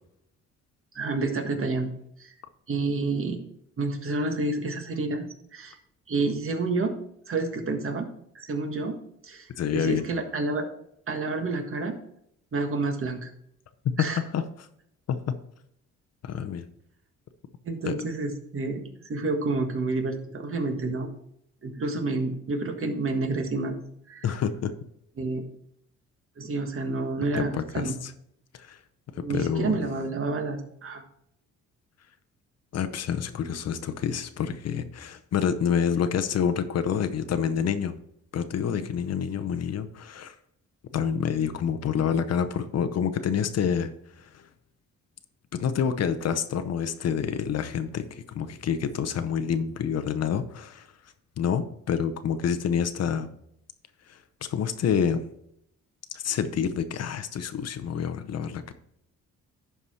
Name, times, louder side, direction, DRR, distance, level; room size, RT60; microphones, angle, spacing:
voice 1, 0.9-1.9 2.2-2.3 2.7-3.4 3.8-5.3 5.5-5.8 6.1-6.9 7.3-8.1 8.3-8.9 9.2-9.5 9.7-10.7 11.1-12.0 12.5-13.3 14.0-14.2 17.6-21.1 21.6-23.8 24.1-24.2 25.2-25.4 26.4-27.9 29.2-31.0, right 3 dB, 45° right, 5 dB, 1.5 m, -29 dB
voice 2, 9.6-10.0 14.0-14.4 15.1-15.2 16.2-16.6 17.9-18.0 24.2-24.7 27.3-28.1 28.5-28.8 29.2-29.8 32.7-38.0 38.3-40.4 40.9-44.5 45.5-50.9 51.4-53.3 54.1-54.2 54.5-55.2 56.1-58.7, left 7 dB, 55° left, 10 dB, 0.8 m, -28 dB
11.0 x 4.8 x 4.2 m, 0.74 s
cardioid pair, 90°, 30 cm